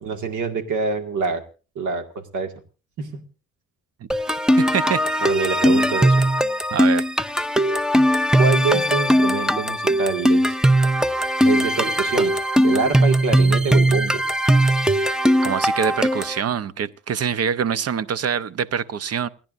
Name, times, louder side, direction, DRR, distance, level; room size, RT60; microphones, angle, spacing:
voice 1, 0.0-1.4 1.8-2.5 3.0-3.2 5.2-6.3 8.4-10.6 11.4-12.3 12.6-14.2, right 4 dB, 80° right, 2.1 m, -25 dB
sound 1, 4.1-16.4, right 1 dB, ahead, 0.7 m, -19 dB
voice 2, 4.6-5.0 6.7-7.0 15.4-19.3, right 7 dB, 55° right, 0.8 m, -24 dB
29.0 x 10.5 x 2.6 m
cardioid pair, 90°, 30 cm